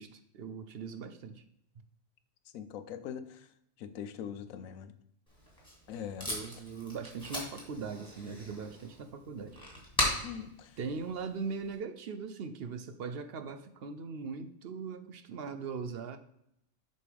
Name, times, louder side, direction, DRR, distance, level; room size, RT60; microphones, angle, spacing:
voice 1, 0.0-1.4 6.3-9.6 10.8-16.2, right 5 dB, 60° right, 9 dB, 0.7 m, -40 dB
voice 2, 2.5-3.5 3.8-4.9 5.9-6.3 10.2-10.8, left 8 dB, 85° left, 12 dB, 1.1 m, -42 dB
Packing tape duct tape, 5.3-11.7, equal, 5° left, 2.3 m, -39 dB
7.8 x 5.3 x 3.4 m, 0.76 s
omnidirectional pair, 1.4 m